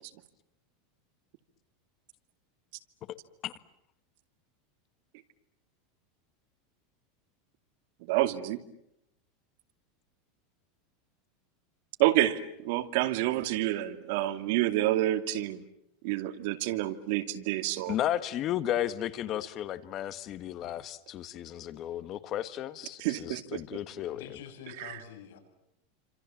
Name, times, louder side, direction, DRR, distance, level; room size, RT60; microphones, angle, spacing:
voice 1, 8.0-8.6 12.0-15.6 16.0-18.0 23.0-23.8 24.8-25.0, right 15 dB, 60° right, 9 dB, 2.4 m, -28 dB
voice 2, 17.9-24.4, left 12 dB, 35° left, 14 dB, 1.5 m, -34 dB
voice 3, 24.1-25.4, left 8 dB, 80° left, 6 dB, 7.0 m, -46 dB
29.5 x 26.5 x 7.3 m, 0.79 s
supercardioid pair, 150°, 0 cm